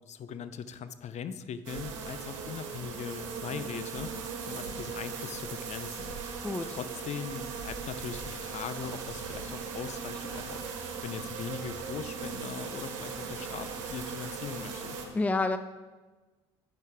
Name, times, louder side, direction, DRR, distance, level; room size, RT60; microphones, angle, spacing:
voice 1, 0.0-6.1 6.6-15.0, left 7 dB, 45° left, 12 dB, 0.7 m, -40 dB
sound 1, 1.7-15.1, right 5 dB, 80° right, 1.3 m, -39 dB
voice 2, 6.4-6.8 15.1-15.6, left 2 dB, 10° left, 11 dB, 0.5 m, -28 dB
11.0 x 8.1 x 3.6 m, 1.3 s
hypercardioid pair, 60°, 16 cm